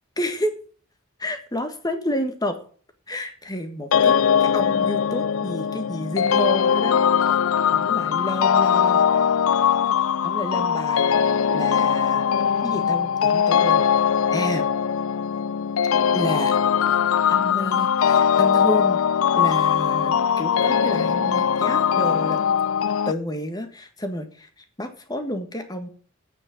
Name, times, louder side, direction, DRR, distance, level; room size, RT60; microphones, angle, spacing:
voice 1, 0.2-0.5 1.2-2.6 3.1-4.1 4.4-7.3 7.7-9.0 10.2-11.1 11.5-12.3 12.6-13.9 14.3-14.6 16.1-16.6 17.3-19.0 19.3-22.4 23.0-24.5 24.8-25.9, left 1 dB, 20° left, 7 dB, 1.7 m, -30 dB
sound 1, 3.9-23.1, left 7 dB, 80° left, 0.5 m, -20 dB
8.8 x 7.5 x 8.4 m, 0.44 s
head